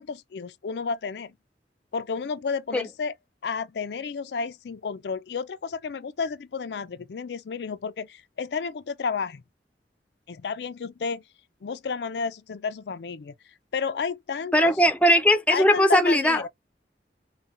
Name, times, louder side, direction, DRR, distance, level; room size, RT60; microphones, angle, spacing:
voice 1, 0.0-1.3 1.9-3.1 3.4-9.4 10.3-11.2 11.6-13.3 13.7-14.7 15.5-16.5, left 5 dB, 70° left, 0.4 m, -31 dB
voice 2, 14.5-16.5, equal, 5° left, 0.5 m, -19 dB
5.4 x 2.2 x 2.5 m
head